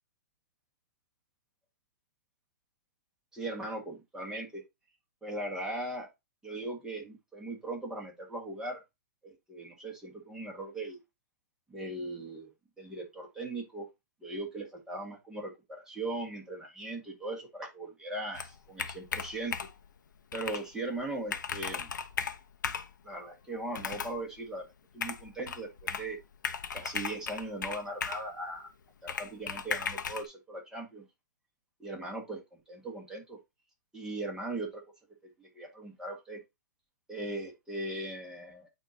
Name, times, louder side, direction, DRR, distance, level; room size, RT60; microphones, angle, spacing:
voice 1, 3.3-4.6 5.2-6.1 6.4-8.8 9.2-11.0 11.7-12.5 12.8-13.9 14.2-19.6 20.3-21.9 23.0-24.7 24.9-26.2 26.7-28.7 29.0-31.0 31.8-33.4 33.9-34.8 35.4-36.4 37.1-38.7, right 2 dB, 5° right, 2.0 m, -39 dB
Computer keyboard, 18.3-19.9 20.3-20.6 21.0-21.1 21.3-22.9 23.7-24.2 25.0-26.1 26.4-28.3 29.1-30.3, left 6 dB, 80° left, 0.9 m, -36 dB
8.9 x 3.0 x 4.0 m
hypercardioid pair, 135°, 10 cm